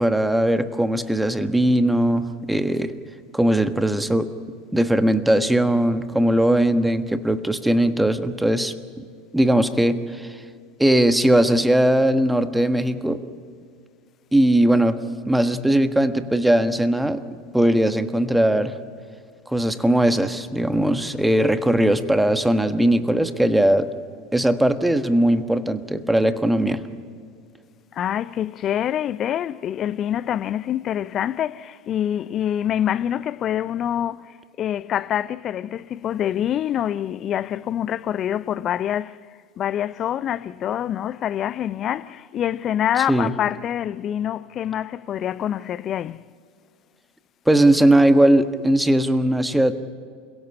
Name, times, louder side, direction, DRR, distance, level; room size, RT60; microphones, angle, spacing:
voice 1, 0.0-2.9 3.3-4.3 4.7-9.0 9.3-10.4 10.8-13.2 14.3-15.0 15.3-17.2 17.5-18.8 19.5-23.9 24.3-26.8 43.1-43.3 47.5-49.7, right 1 dB, 5° right, 1.4 m, -19 dB
voice 2, 27.9-39.2 39.6-46.2, left 10 dB, 40° left, 0.6 m, -26 dB
28.0 x 17.0 x 8.7 m
hypercardioid pair, 80°, 0 cm